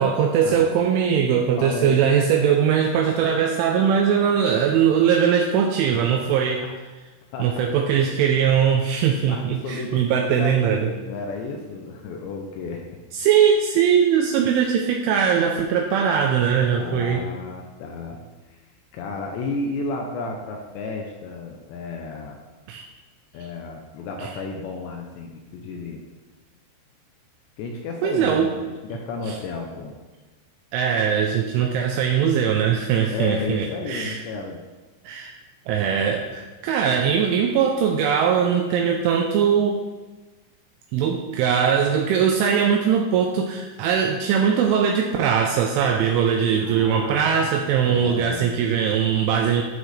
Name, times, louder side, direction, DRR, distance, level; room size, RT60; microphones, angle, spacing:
voice 1, 0.0-6.6 7.4-10.9 13.1-17.3 22.7-22.8 24.2-24.4 28.0-28.5 29.3-29.4 30.7-34.2 35.0-35.3 35.7-39.8 40.9-49.6, right 7 dB, 85° right, 1 dB, 3.0 m, -21 dB
voice 2, 1.6-2.0 6.4-6.7 7.3-7.6 9.2-12.8 16.7-18.2 18.5-18.6 18.9-22.4 23.3-26.0 27.6-29.9 33.1-34.6 46.6-47.2 47.9-48.6, left 3 dB, 80° left, 2 dB, 2.7 m, -32 dB
14.5 x 6.2 x 3.3 m, 1.2 s
omnidirectional pair, 5.9 m